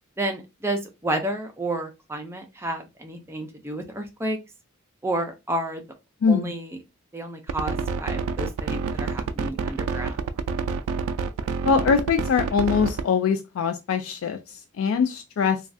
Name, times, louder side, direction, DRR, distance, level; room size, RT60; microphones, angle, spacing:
voice 1, 0.2-4.4 5.0-5.8 6.3-6.8 7.1-10.2, right 1 dB, 10° right, 0.5 m, -31 dB
voice 2, 6.2-6.5 11.6-15.6, left 6 dB, 70° left, 0.3 m, -23 dB
sound 1, 7.5-13.1, right 5 dB, 80° right, 0.3 m, -27 dB
3.1 x 2.3 x 2.6 m
head